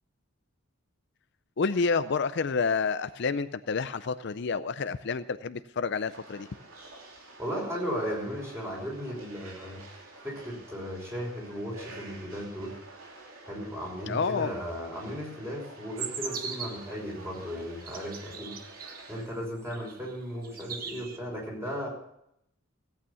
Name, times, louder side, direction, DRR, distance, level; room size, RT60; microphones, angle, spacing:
voice 1, 1.6-6.5 14.1-14.5, left 5 dB, 55° left, 13 dB, 0.5 m, -29 dB
sound 1, 6.1-19.2, right 2 dB, 85° right, 3.3 m, -49 dB
voice 2, 7.4-10.0 10.2-12.7 13.5-18.5 19.1-21.9, equal, 15° right, -2 dB, 5.5 m, -36 dB
sound 2, 16.0-16.9 17.6-19.1 19.7-20.2 20.4-21.2, right 6 dB, 45° right, 1.3 m, -39 dB
17.0 x 9.0 x 6.9 m, 0.77 s
head